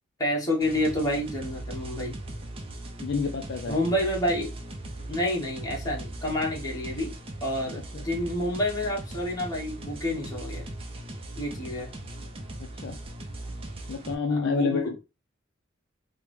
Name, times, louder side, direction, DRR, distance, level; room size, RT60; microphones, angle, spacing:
voice 1, 0.2-2.2 3.7-4.5 5.1-7.1 7.4-10.7 11.4-11.9 14.3-15.0, left 1 dB, 20° left, 1.0 m, -29 dB
sound 1, 0.6-14.1, right 1 dB, 30° right, 0.5 m, -39 dB
voice 2, 3.0-3.8 7.9-8.1 12.8-13.0 13.9-15.0, left 4 dB, 60° left, 0.4 m, -28 dB
3.3 x 2.1 x 3.0 m
head